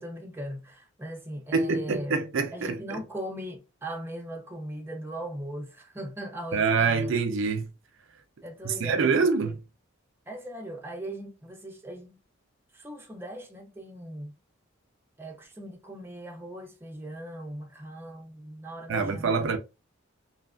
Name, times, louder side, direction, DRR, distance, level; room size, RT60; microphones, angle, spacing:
voice 1, 0.0-2.2 2.5-7.1 8.4-9.5 10.3-12.2 12.7-14.3 15.2-19.6, right 1 dB, 10° right, 0.5 m, -39 dB
voice 2, 1.5-3.0 6.5-7.7 8.6-9.6 18.9-19.6, right 4 dB, 65° right, 0.4 m, -25 dB
2.8 x 2.4 x 2.2 m
head